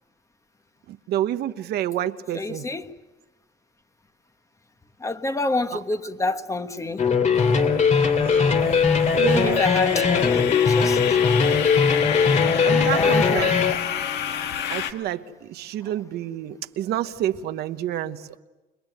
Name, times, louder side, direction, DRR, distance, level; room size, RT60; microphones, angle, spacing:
voice 1, 0.9-2.7 5.7-5.8 8.0-8.6 9.1-9.6 12.6-13.7 14.7-18.4, right 12 dB, 75° right, 1.1 m, -29 dB
voice 2, 2.3-2.9 5.0-7.0 9.2-11.0 12.9-13.5, left 2 dB, 20° left, 1.4 m, -28 dB
sound 1, 7.0-13.7, left 5 dB, 45° left, 2.5 m, -20 dB
sound 2, 7.3-14.9, left 9 dB, 80° left, 1.9 m, -30 dB
29.5 x 21.5 x 8.0 m
cardioid pair, 110°, 17 cm